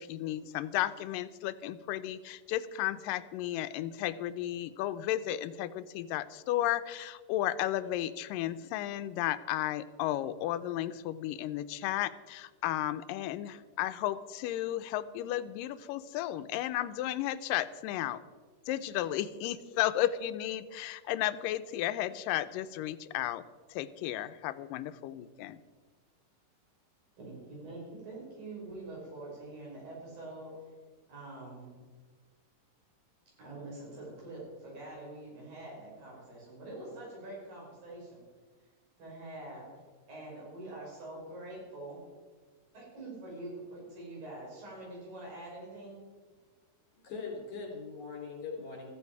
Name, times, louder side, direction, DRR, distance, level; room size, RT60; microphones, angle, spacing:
voice 1, 0.0-18.2 18.7-23.4 23.7-25.6, left 13 dB, 85° left, 13 dB, 2.3 m, -33 dB
voice 2, 27.2-30.5 31.1-31.8 33.4-38.2 39.0-39.7 40.1-42.0 42.7-46.0, right 2 dB, 90° right, -4 dB, 7.2 m, -45 dB
voice 3, 47.0-48.9, left 4 dB, 60° left, 0 dB, 4.8 m, -41 dB
15.0 x 14.5 x 4.7 m, 1.4 s
omnidirectional pair, 3.9 m